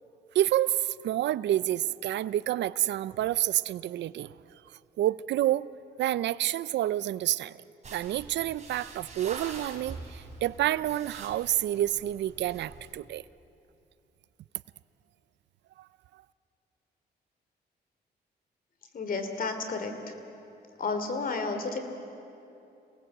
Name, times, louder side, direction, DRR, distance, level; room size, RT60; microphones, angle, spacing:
voice 1, 0.3-4.3 5.0-5.7 6.0-7.6 7.9-13.2, right 13 dB, 85° right, 18 dB, 0.5 m, -28 dB
sound 1, 7.8-12.9, right 3 dB, 40° right, 3.9 m, -45 dB
voice 2, 18.9-20.1 20.8-21.8, left 4 dB, 55° left, 7 dB, 2.9 m, -32 dB
27.5 x 19.0 x 7.9 m, 2.8 s
cardioid pair, 100°, 18 cm